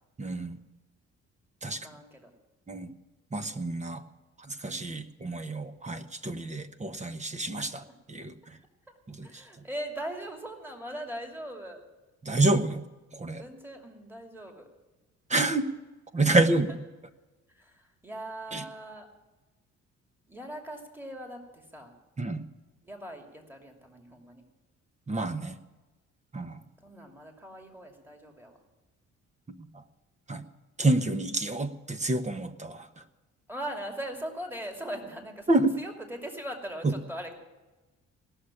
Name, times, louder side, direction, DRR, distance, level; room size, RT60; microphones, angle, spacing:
voice 1, 0.2-0.6 1.6-1.8 2.7-2.9 3.3-4.0 4.6-7.8 8.1-8.3 9.1-9.3 12.2-12.8 13.2-13.4 15.3-15.7 16.1-16.7 18.5-18.6 22.2-22.4 25.1-25.5 26.3-26.6 30.3-30.4 30.8-32.8 35.5-35.7, right 2 dB, 25° right, 9 dB, 1.0 m, -28 dB
voice 2, 1.8-2.3 7.9-8.0 9.2-11.8 13.3-14.7 16.2-16.6 17.6-19.1 20.3-21.9 22.8-24.4 26.8-28.6 33.5-37.3, right 1 dB, 5° right, 2 dB, 2.6 m, -40 dB
18.0 x 6.5 x 9.8 m, 1.1 s
cardioid pair, 90°, 30 cm